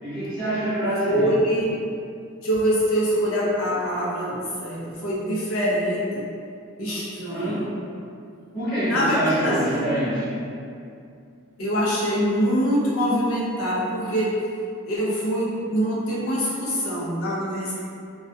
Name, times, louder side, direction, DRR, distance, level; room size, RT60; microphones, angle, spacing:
voice 1, 0.0-1.4 7.3-7.6 8.5-10.3, right 1 dB, 35° left, -14 dB, 0.9 m, -25 dB
voice 2, 1.0-1.9 2.4-6.2 6.8-7.7 8.8-9.9 11.6-14.3 14.8-17.7, equal, 85° left, -6 dB, 0.6 m, -24 dB
2.2 x 2.1 x 2.6 m, 2.4 s
head